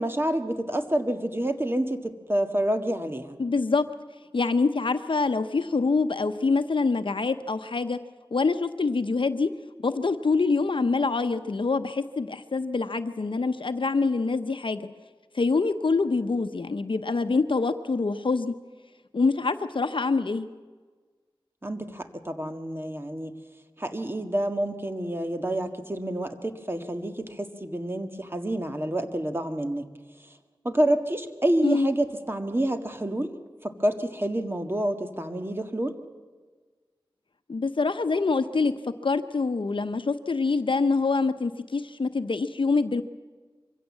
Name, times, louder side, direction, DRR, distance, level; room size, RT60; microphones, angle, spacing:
voice 1, 0.0-3.4 21.6-23.3 23.8-29.8 30.6-33.3 33.6-35.9, right 1 dB, 25° right, 6 dB, 1.7 m, -28 dB
voice 2, 3.4-3.8 4.3-8.0 8.3-9.5 9.8-14.8 15.3-18.5 19.1-20.5 31.6-31.9 37.5-38.7 39.0-43.0, left 4 dB, 70° left, 9 dB, 0.8 m, -25 dB
24.0 x 16.0 x 7.4 m, 1.4 s
wide cardioid pair, 60°, 9 cm